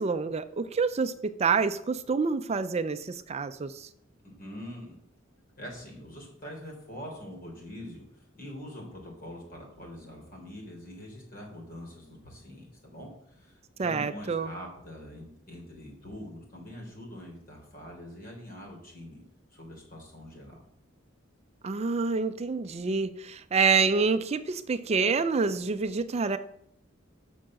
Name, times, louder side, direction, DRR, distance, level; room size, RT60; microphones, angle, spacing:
voice 1, 0.0-3.9 13.8-14.5 21.6-26.4, right 4 dB, 35° right, 11 dB, 0.4 m, -27 dB
voice 2, 4.2-4.9 5.6-19.2 19.5-20.6, equal, 50° left, 0 dB, 3.5 m, -44 dB
7.0 x 6.3 x 7.4 m, 0.71 s
head